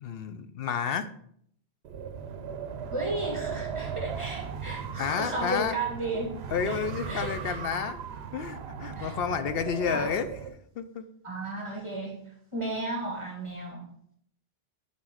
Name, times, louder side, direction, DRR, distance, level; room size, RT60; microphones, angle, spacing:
voice 1, 0.0-1.1 5.0-5.8 6.5-8.0 8.3-10.3 10.8-11.1, left 7 dB, 65° left, 11 dB, 0.8 m, -30 dB
Wind, 1.8-10.6, right 6 dB, 75° right, 0.9 m, -37 dB
voice 2, 2.9-6.4 6.6-6.8 7.0-7.6 9.0-9.2 9.9-10.1 11.2-13.9, right 2 dB, 30° right, -1 dB, 2.4 m, -34 dB
7.5 x 4.2 x 6.3 m, 0.65 s
omnidirectional pair, 1.1 m